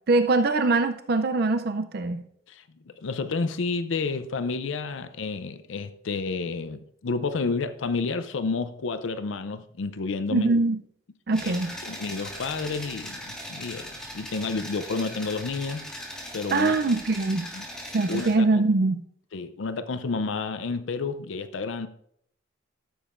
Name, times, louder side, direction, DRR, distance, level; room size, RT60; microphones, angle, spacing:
voice 1, 0.1-2.2 10.3-10.8 11.3-11.7 16.5-17.5 17.9-19.0, right 3 dB, 55° right, 0.5 m, -23 dB
voice 2, 2.5-10.5 11.4-11.6 11.8-13.9 14.1-15.8 16.3-16.8 17.5-17.7 18.1-18.5 19.3-21.9, left 4 dB, 80° left, 0.5 m, -30 dB
sound 1, 11.3-18.3, equal, 5° left, 1.6 m, -39 dB
14.0 x 7.1 x 2.5 m
head